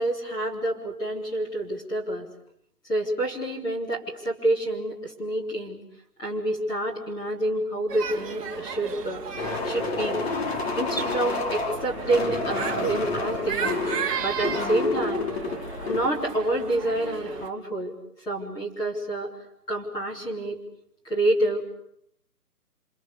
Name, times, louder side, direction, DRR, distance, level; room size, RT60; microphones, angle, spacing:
voice 1, 0.0-2.3 2.9-5.8 6.2-10.2 10.8-13.8 14.2-15.3 15.9-17.9 18.3-19.3 19.7-20.6 21.0-21.7, right 1 dB, 10° left, -4 dB, 3.7 m, -28 dB
sound 1, 7.9-17.5, right 7 dB, 20° right, 2.4 m, -35 dB
sound 2, 9.4-16.1, left 3 dB, 40° left, 3.3 m, -29 dB
29.0 x 27.5 x 7.1 m, 0.71 s
figure-of-eight pair, 150°, 47 cm